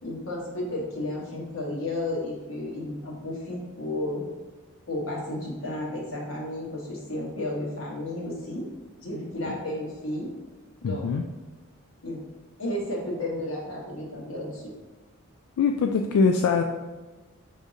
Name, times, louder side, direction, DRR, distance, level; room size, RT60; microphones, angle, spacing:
voice 1, 0.0-4.3 4.9-8.6 9.0-10.3 10.8-11.1 12.0-12.2 12.6-14.7, left 1 dB, 65° left, -3 dB, 1.2 m, -32 dB
voice 2, 10.8-11.2 15.6-16.6, left 5 dB, 85° left, 6 dB, 0.3 m, -23 dB
5.0 x 3.6 x 2.7 m, 1.2 s
head